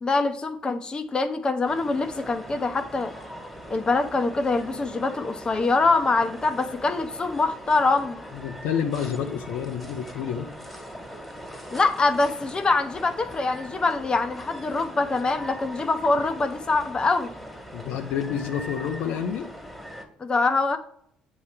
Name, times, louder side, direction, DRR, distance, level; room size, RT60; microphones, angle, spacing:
voice 1, 0.0-3.1 3.7-8.2 11.7-17.3 20.2-20.8, left 3 dB, 30° left, 8 dB, 0.8 m, -24 dB
sound 1, 1.7-20.1, equal, ahead, 1.7 m, -41 dB
voice 2, 8.3-10.5 17.7-19.5, left 8 dB, 75° left, 6 dB, 0.6 m, -29 dB
8.2 x 2.9 x 4.8 m, 0.67 s
hypercardioid pair, 60°, 3 cm